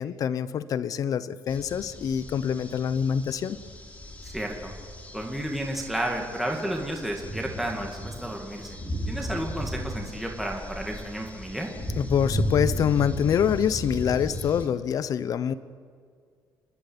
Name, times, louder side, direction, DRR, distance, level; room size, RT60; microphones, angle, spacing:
voice 1, 0.0-3.6 12.0-15.5, left 8 dB, 50° left, 15 dB, 0.9 m, -25 dB
sound 1, 1.5-14.7, equal, 20° left, 3.5 m, -35 dB
voice 2, 4.2-4.7 5.1-8.8 9.1-11.7, right 1 dB, 5° right, 0 dB, 2.0 m, -32 dB
29.0 x 12.0 x 10.0 m, 2.1 s
cardioid pair, 170°, 8 cm